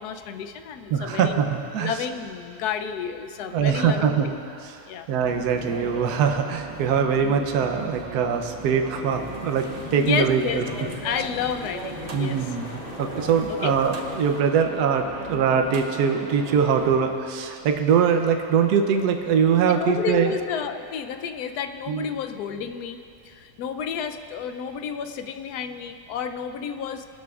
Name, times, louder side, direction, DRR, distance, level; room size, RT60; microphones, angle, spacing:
voice 1, 0.0-1.4 1.8-4.3 4.9-5.1 10.0-12.5 13.5-13.7 19.6-27.1, left 7 dB, 80° left, 8 dB, 1.1 m, -31 dB
voice 2, 0.9-1.9 3.5-4.3 4.6-4.7 5.1-10.6 12.1-20.3 21.9-22.1, right 7 dB, 75° right, 5 dB, 1.3 m, -22 dB
sound 1, 5.2-17.0, right 2 dB, 40° right, 0.6 m, -38 dB
sound 2, 9.1-14.4, left 5 dB, 60° left, 0.6 m, -41 dB
20.5 x 12.0 x 2.4 m, 2.5 s
omnidirectional pair, 1.7 m